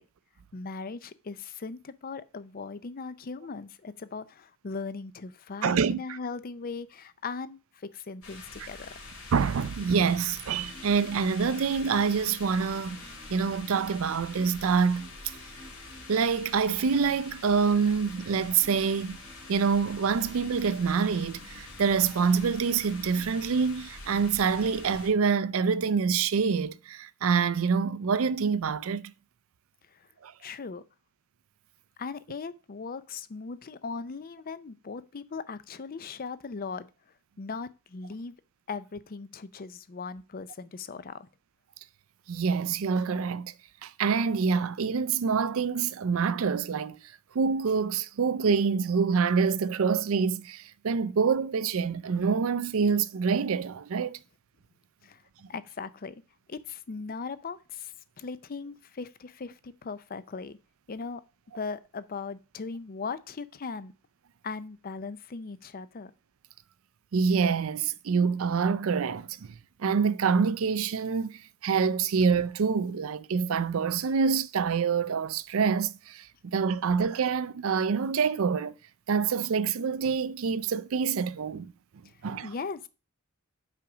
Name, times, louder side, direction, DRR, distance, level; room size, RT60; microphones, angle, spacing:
voice 1, 0.5-8.9 29.9-30.1 30.4-30.8 32.0-36.9 37.4-38.3 38.7-41.3 55.0-55.2 55.5-56.1 56.5-60.6 60.9-61.2 61.5-63.9 64.4-66.1 82.4-82.9, left 4 dB, 40° left, 0.5 m, -38 dB
voice 2, 5.6-6.2 9.3-13.0 13.3-15.1 16.1-19.2 19.5-29.1 30.2-30.3 42.3-43.5 43.8-47.0 47.3-54.2 67.1-69.4 69.8-76.3 76.5-78.7 79.1-81.7 82.2-82.5, right 5 dB, 70° right, 0.4 m, -26 dB
sound 1, 8.2-25.1, left 3 dB, 90° left, 2.7 m, -46 dB
sound 2, 10.5-23.3, left 1 dB, 20° left, 1.1 m, -54 dB
5.7 x 5.0 x 6.1 m
head